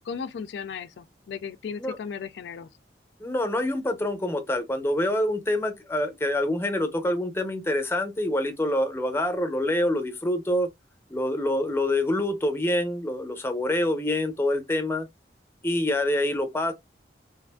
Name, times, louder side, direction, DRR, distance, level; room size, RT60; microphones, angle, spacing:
voice 1, 0.0-2.7, left 6 dB, 75° left, 0.3 m, -36 dB
voice 2, 3.2-10.7 11.1-15.1 15.6-16.7, left 1 dB, 15° left, 0.5 m, -26 dB
3.3 x 2.4 x 2.2 m
head